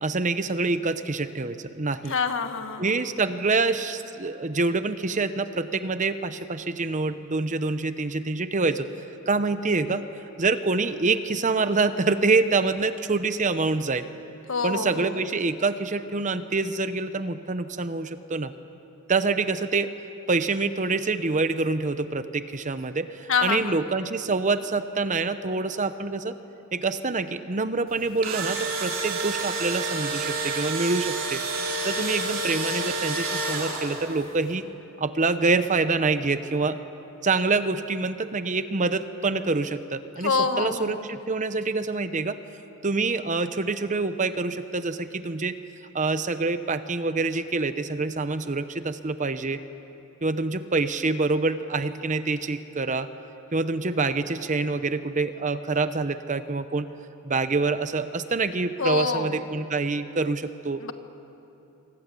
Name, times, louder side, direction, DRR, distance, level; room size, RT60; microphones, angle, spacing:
voice 1, 0.0-2.1 2.8-8.9 9.3-10.0 10.4-14.1 14.6-18.5 19.1-19.9 20.3-26.4 26.7-31.4 31.8-34.7 35.0-36.8 37.2-42.4 42.8-45.6 45.9-49.6 50.2-53.1 53.5-56.9 57.2-60.8, right 3 dB, 35° right, 11 dB, 0.8 m, -26 dB
voice 2, 2.1-2.9 14.5-15.2 23.3-23.7 40.2-41.0 58.8-59.4 60.8-60.9, left 4 dB, 60° left, 8 dB, 1.5 m, -26 dB
Engine / Drill, 28.0-34.2, right 3 dB, 60° right, 4.3 m, -29 dB
27.5 x 25.0 x 8.4 m, 2.9 s
head